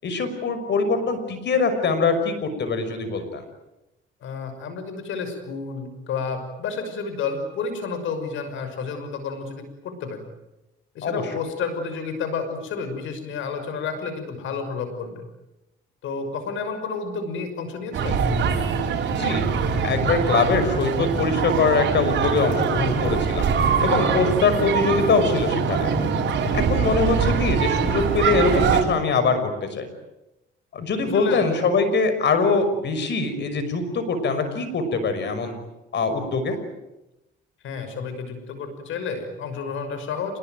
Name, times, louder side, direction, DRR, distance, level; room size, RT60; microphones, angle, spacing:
voice 1, 0.0-3.4 11.0-11.2 19.1-19.4 19.8-23.5 23.8-25.9 26.5-29.9 30.7-35.5 35.9-36.6, left 4 dB, 60° left, 9 dB, 5.9 m, -23 dB
voice 2, 4.2-10.2 10.9-15.3 16.0-18.3 26.4-26.7 31.0-31.5 37.6-40.4, left 5 dB, 80° left, 9 dB, 6.0 m, -31 dB
sound 1, 17.9-28.8, right 6 dB, 70° right, 5.7 m, -23 dB
26.5 x 21.5 x 9.3 m, 0.96 s
cardioid pair, 90°, 20 cm